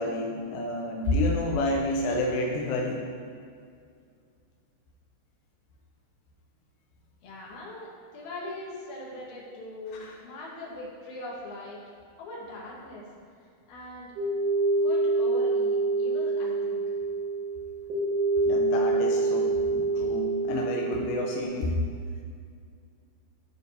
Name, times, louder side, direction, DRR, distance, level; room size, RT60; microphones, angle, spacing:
voice 1, 0.0-3.0 10.0-10.2 18.5-21.8, left 1 dB, 90° left, 0 dB, 2.5 m, -29 dB
voice 2, 7.2-11.8 12.2-13.0 13.7-14.1 14.7-16.8, left 1 dB, 65° left, -4 dB, 2.7 m, -41 dB
sound 1, 14.2-21.4, right 3 dB, 70° right, 3.0 m, -26 dB
13.5 x 4.6 x 2.8 m, 2.2 s
omnidirectional pair, 4.0 m